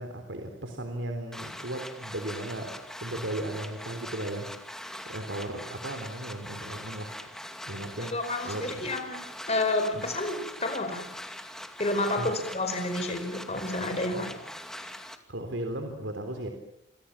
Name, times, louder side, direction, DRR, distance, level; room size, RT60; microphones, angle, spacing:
voice 1, 0.0-7.3 7.6-8.2 8.4-8.9 9.9-10.1 12.2-12.3 15.3-16.5, right 1 dB, 75° right, 5 dB, 3.6 m, -36 dB
sound 1, 1.3-15.2, left 1 dB, 5° left, 2.5 m, -42 dB
voice 2, 8.1-9.2 9.5-11.0 11.8-14.4, left 2 dB, 35° left, 6 dB, 4.8 m, -30 dB
29.5 x 25.0 x 7.4 m, 0.79 s
head